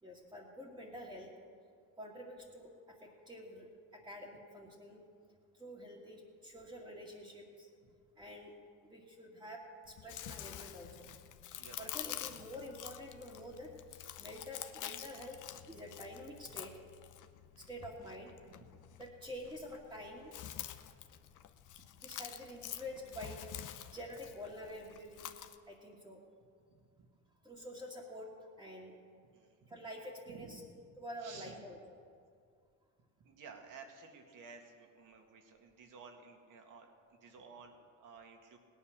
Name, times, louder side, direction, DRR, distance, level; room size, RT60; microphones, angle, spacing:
voice 1, 0.0-1.3 2.0-3.7 3.9-5.0 5.5-7.7 8.2-8.6 8.8-11.1 11.8-15.4 15.7-16.7 17.6-18.3 19.0-20.3 22.0-23.6 23.9-25.3 25.7-26.2 27.4-28.3 28.6-29.0 29.7-30.6 31.0-31.8, equal, 10° right, -5 dB, 2.2 m, -48 dB
Chewing mastication, 9.9-25.6, left 11 dB, 60° left, 0.9 m, -48 dB
voice 2, 26.7-27.1 29.3-29.5 30.3-30.6 31.2-31.5 33.2-38.6, right 5 dB, 60° right, 3 dB, 2.2 m, -54 dB
17.5 x 9.8 x 6.6 m, 2.2 s
cardioid pair, 105°, 36 cm